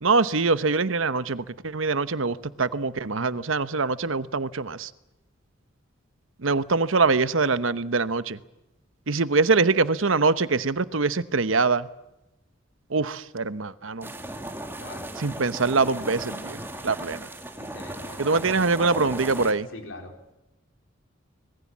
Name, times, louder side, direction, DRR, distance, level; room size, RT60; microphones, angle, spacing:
voice 1, 0.0-4.9 6.4-8.4 9.1-11.9 12.9-14.1 15.2-17.3 18.2-19.7, right 4 dB, 75° right, 14 dB, 1.0 m, -24 dB
sound 1, 14.0-19.5, right 1 dB, 10° right, 2.3 m, -37 dB
voice 2, 14.8-15.1 17.6-18.5 19.7-20.1, left 2 dB, 70° left, 4 dB, 4.2 m, -43 dB
25.5 x 21.0 x 7.4 m, 0.96 s
head